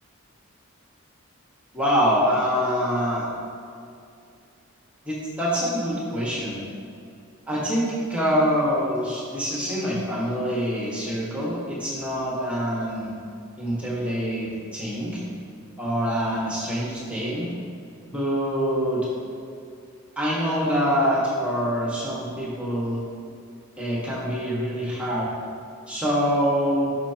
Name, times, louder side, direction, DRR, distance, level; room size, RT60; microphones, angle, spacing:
voice 1, 1.7-3.3 5.0-6.6 7.5-13.1 13.6-15.2 15.8-17.5 18.1-19.1 20.2-23.0 23.8-25.3 25.9-26.9, equal, 5° right, -6 dB, 1.4 m, -25 dB
12.0 x 5.9 x 2.9 m, 2.4 s
head